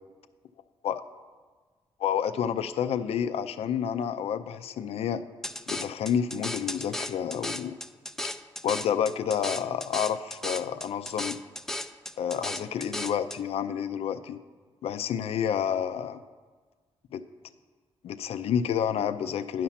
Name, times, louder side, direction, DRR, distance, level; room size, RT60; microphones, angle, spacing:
voice 1, 2.0-5.2 5.7-7.8 8.6-11.4 12.2-14.4 14.8-16.2 17.1-17.2 18.0-19.6, left 8 dB, 75° left, 12 dB, 0.4 m, -29 dB
sound 1, 5.4-13.4, left 1 dB, 5° left, 0.3 m, -36 dB
10.0 x 5.9 x 5.7 m, 1.4 s
cardioid pair, 100°, 10 cm